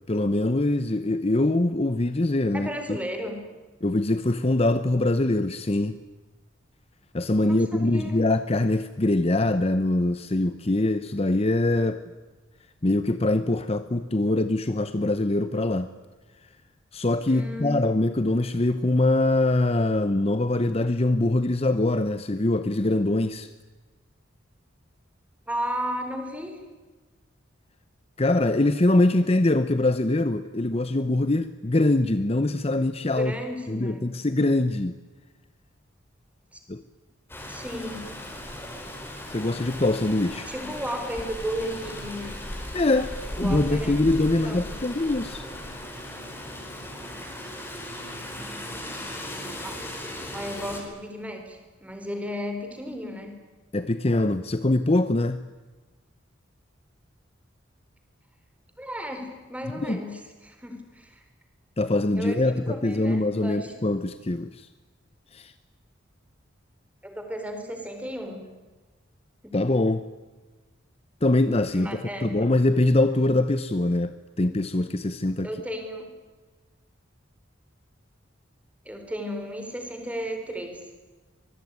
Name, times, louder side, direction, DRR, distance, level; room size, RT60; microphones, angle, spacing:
voice 1, 0.1-3.0 3.8-6.0 7.1-12.0 12.8-15.9 16.9-23.5 28.2-33.3 33.7-35.0 36.7-36.8 39.3-40.5 42.7-43.1 43.4-45.4 53.7-55.4 59.8-60.0 61.8-64.7 65.3-65.5 69.5-70.1 71.2-75.5, left 2 dB, 30° left, 0.8 m, -23 dB
voice 2, 2.5-3.4 7.4-8.2 17.3-17.8 25.5-26.6 33.0-34.1 36.5-36.6 37.5-38.3 40.4-42.4 43.3-44.0 44.3-44.6 49.6-49.7 50.3-53.4 58.8-61.2 62.1-63.7 67.0-68.4 69.4-69.6 71.7-72.5 75.4-76.1 78.8-80.8, equal, 5° right, 4.2 m, -34 dB
Rain, 37.3-50.8, left 1 dB, 10° left, 5.0 m, -37 dB
25.0 x 21.0 x 9.5 m
head